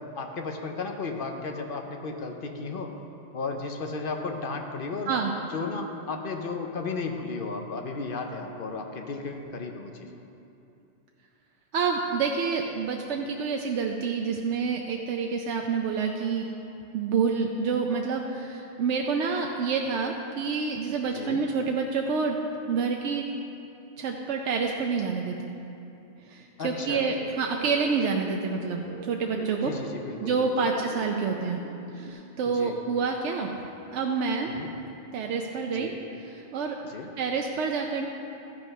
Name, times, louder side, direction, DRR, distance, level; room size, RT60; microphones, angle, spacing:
voice 1, 0.0-3.0 3.3-5.1 5.5-10.1 21.1-21.4 26.6-27.1 29.6-30.7 32.5-32.8 34.5-34.7 35.7-36.0 36.8-37.1, left 4 dB, 55° left, 4 dB, 0.9 m, -34 dB
voice 2, 11.7-16.5 16.9-22.4 22.7-23.3 24.0-25.5 26.2-29.7 30.2-31.6 31.9-33.5 33.9-34.6 35.1-36.8 37.2-38.1, right 5 dB, 85° right, 2 dB, 1.0 m, -28 dB
sound 1, 26.8-32.1, right 2 dB, 65° right, 1.3 m, -44 dB
13.5 x 5.7 x 5.4 m, 2.8 s
omnidirectional pair, 1.2 m